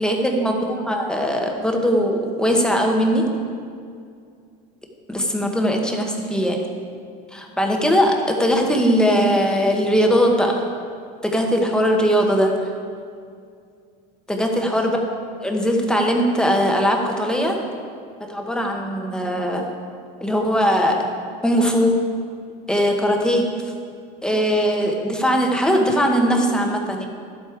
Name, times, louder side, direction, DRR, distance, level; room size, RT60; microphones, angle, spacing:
voice 1, 0.0-3.3 5.1-6.7 7.3-10.6 11.2-12.6 14.3-15.0 15.4-17.6 18.3-19.7 20.2-21.1 21.4-22.1 22.7-23.5 24.2-27.1, equal, 5° left, 1 dB, 0.9 m, -20 dB
11.5 x 8.3 x 4.5 m, 2.3 s
cardioid pair, 155°, 19 cm